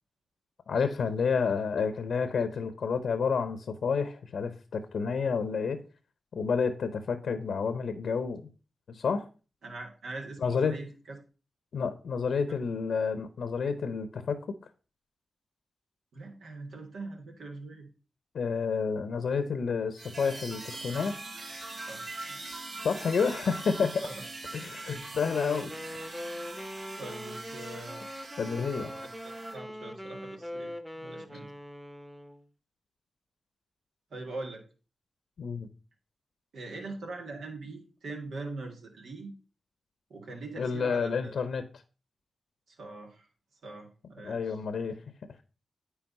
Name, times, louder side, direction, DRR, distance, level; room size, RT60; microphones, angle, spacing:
voice 1, 0.7-5.8 6.3-8.4 8.9-9.3 10.4-10.8 11.7-14.4 18.3-21.1 22.8-24.0 24.5-26.0 28.4-28.9 35.4-35.7 40.6-41.6 44.2-45.0, left 5 dB, 80° left, 0.7 m, -30 dB
voice 2, 9.6-11.2 16.1-17.9 21.9-22.4 24.0-24.2 27.0-28.0 28.9-30.7 31.0-31.5 34.1-34.6 36.5-39.3 40.1-41.4 42.7-43.3 43.6-44.6, right 2 dB, 80° right, 1.8 m, -42 dB
sound 1, 19.9-29.6, right 2 dB, 65° right, 1.6 m, -42 dB
Wind instrument woodwind instrument, 25.2-32.4, equal, 5° right, 1.0 m, -42 dB
9.5 x 3.5 x 5.4 m
supercardioid pair, 40°, 0 cm